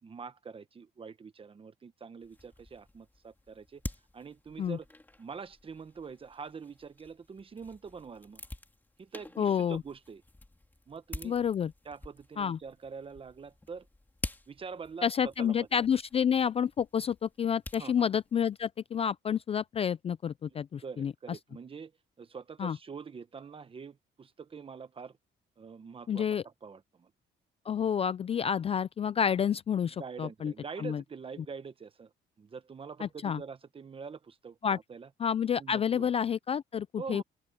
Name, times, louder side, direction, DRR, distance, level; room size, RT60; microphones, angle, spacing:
voice 1, 0.0-3.8 4.1-4.9 5.2-8.4 9.0-10.2 10.9-11.4 11.8-13.9 14.5-15.9 17.8-18.1 20.5-21.9 22.2-25.2 25.6-27.1 29.9-32.1 32.4-35.1 35.6-36.1 37.0-37.2, right 5 dB, 30° right, 1.2 m, -45 dB
sound 1, 2.2-18.7, left 2 dB, 10° left, 2.3 m, -48 dB
voice 2, 9.4-9.8 11.2-11.7 12.4-12.6 15.0-21.1 22.6-22.8 26.1-26.4 27.7-30.5 30.8-31.0 33.0-33.4 34.6-34.8 35.2-37.2, left 8 dB, 30° left, 0.3 m, -29 dB
open air
cardioid pair, 135°, 19 cm